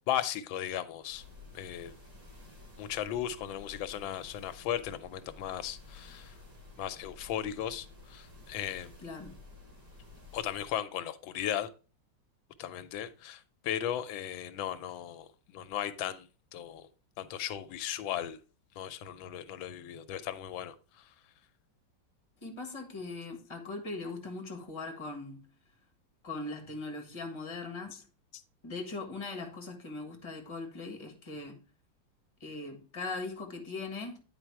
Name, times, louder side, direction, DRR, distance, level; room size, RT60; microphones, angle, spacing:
voice 1, 0.1-1.2 1.5-1.9 2.8-6.4 6.8-8.9 10.3-11.7 12.6-16.9 17.2-18.4 18.8-21.1, left 11 dB, 90° left, 1.5 m, -36 dB
sound 1, 1.0-10.8, left 2 dB, 50° right, 3.6 m, -53 dB
voice 2, 9.0-9.4 22.4-25.5 26.2-28.0 28.6-31.6 32.4-34.2, left 3 dB, 15° left, 1.4 m, -40 dB
9.1 x 4.7 x 4.6 m
omnidirectional pair, 2.1 m